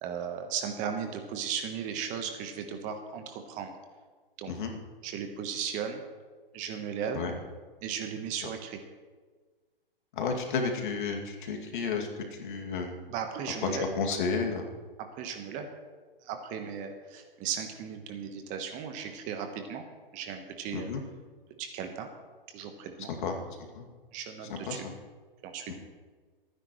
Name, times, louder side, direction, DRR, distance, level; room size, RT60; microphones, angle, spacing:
voice 1, 0.0-3.7 4.4-4.5 5.0-6.0 6.5-7.2 7.8-8.8 13.1-13.8 15.2-15.7 16.2-19.8 20.1-20.9 21.6-22.1 22.5-23.1 24.1-24.9 25.4-25.7, right 7 dB, 25° right, 6 dB, 1.1 m, -36 dB
voice 2, 10.1-12.1 12.4-13.0 13.7-14.6 20.7-21.0 23.1-23.4 23.8-23.9 24.5-24.9 25.7-25.8, left 5 dB, 55° left, 2 dB, 2.4 m, -32 dB
24.5 x 10.0 x 3.1 m, 1.5 s
hypercardioid pair, 135°, 29 cm